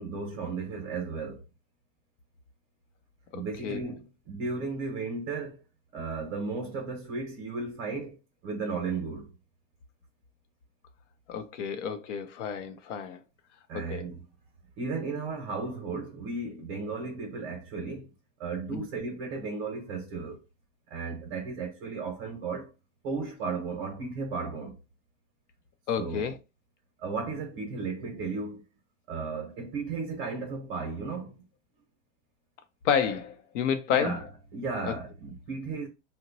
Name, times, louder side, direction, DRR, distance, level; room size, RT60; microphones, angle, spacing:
voice 1, 0.0-1.4 3.3-5.6 5.9-9.3 13.7-14.2 14.8-18.1 18.4-20.4 20.9-22.7 23.0-24.8 26.0-26.4 27.0-28.6 29.1-31.4 33.9-35.9, right 4 dB, 40° right, 0.8 m, -35 dB
voice 2, 3.3-3.8 11.3-13.2 13.7-14.0 18.7-18.9 25.9-26.4 32.8-34.2 34.8-34.9, left 7 dB, 65° left, 0.7 m, -30 dB
2.9 x 2.1 x 3.9 m
supercardioid pair, 170°, 40 cm